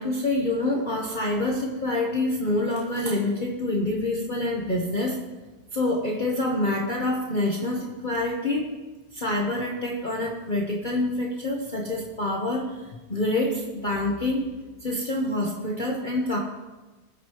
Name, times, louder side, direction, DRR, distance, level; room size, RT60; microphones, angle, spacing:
voice 1, 0.0-5.2 5.7-8.7 9.1-14.4 14.8-16.4, left 2 dB, 35° left, -1 dB, 1.1 m, -26 dB
18.5 x 8.1 x 3.0 m, 1.2 s
omnidirectional pair, 1.6 m